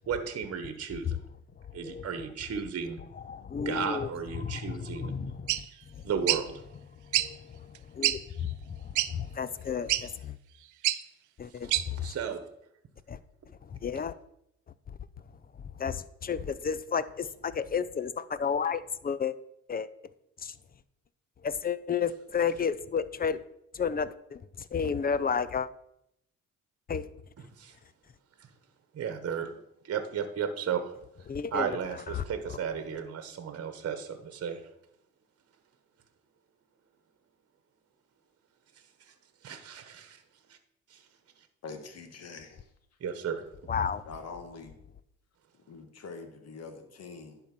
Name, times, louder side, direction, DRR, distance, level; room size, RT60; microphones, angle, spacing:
voice 1, 0.1-1.2 1.7-3.0 3.6-5.1 6.0-6.6 11.5-12.4 27.4-27.8 28.4-28.5 28.9-29.5 29.8-31.0 31.5-34.7 39.0-39.1 39.4-40.2 40.5-40.6 40.9-41.1 41.4-41.5 43.0-43.4, right 7 dB, 50° right, 9 dB, 1.2 m, -34 dB
voice 2, 3.3-4.1 4.4-4.6 5.0-5.6 6.0-6.1 7.1-10.4 11.4-12.2 13.1-13.2 13.7-14.1 14.9-15.0 15.8-19.3 19.7-19.9 20.4-20.5 21.4-23.4 23.7-25.7 26.9-27.1 31.3-31.8 32.1-32.2 43.7-44.0, left 6 dB, 30° left, 16 dB, 0.5 m, -32 dB
sound 1, 5.5-5.6 6.3-6.4 7.1-7.3 7.7-7.8 8.0-8.2 8.9-9.1 9.9-10.0 10.8-11.0 11.7-11.8, right 14 dB, 75° right, 0.5 m, -25 dB
voice 3, 41.6-42.7 44.0-44.7 45.7-47.4, left 4 dB, 55° left, 6 dB, 1.5 m, -44 dB
10.5 x 4.3 x 6.0 m, 0.76 s
cardioid pair, 90°, 30 cm